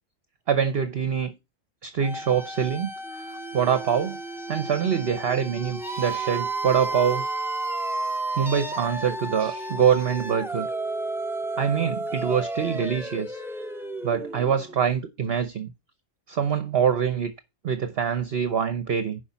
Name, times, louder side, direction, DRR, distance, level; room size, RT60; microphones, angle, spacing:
voice 1, 0.5-1.4 1.8-3.2 3.5-4.2 4.5-7.3 8.4-10.7 11.6-13.4 14.0-15.7 16.3-17.3 17.6-19.2, right 7 dB, 50° right, 1.0 m, -25 dB
sound 1, 2.0-14.8, right 2 dB, 5° right, 0.5 m, -32 dB
7.1 x 5.2 x 6.8 m
omnidirectional pair, 1.4 m